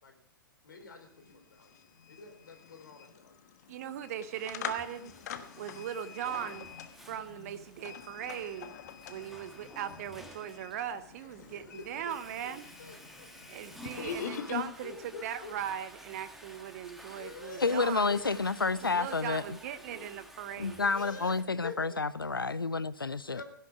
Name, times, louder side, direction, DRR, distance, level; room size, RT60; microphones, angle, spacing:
voice 1, 0.6-3.4 11.4-11.9 12.4-12.5 12.8-13.7 14.8-15.5 17.2-18.5 19.9-20.1 20.8-22.3 23.3-23.4, left 5 dB, 65° left, 4.1 m, -47 dB
sound 1, 0.8-0.9 1.2-14.6, left 9 dB, 50° left, 1.3 m, -45 dB
voice 2, 3.7-5.1 5.6-6.7 7.1-8.7 9.1-12.7 13.5-14.9 15.2-18.1 18.9-20.8, right 10 dB, 45° right, 0.9 m, -39 dB
Water / Toilet flush, 3.9-21.4, right 1 dB, ahead, 1.6 m, -52 dB
voice 3, 17.6-19.6 20.6-23.4, left 4 dB, 80° left, 0.5 m, -30 dB
17.0 x 12.0 x 4.9 m
figure-of-eight pair, 110°, 12 cm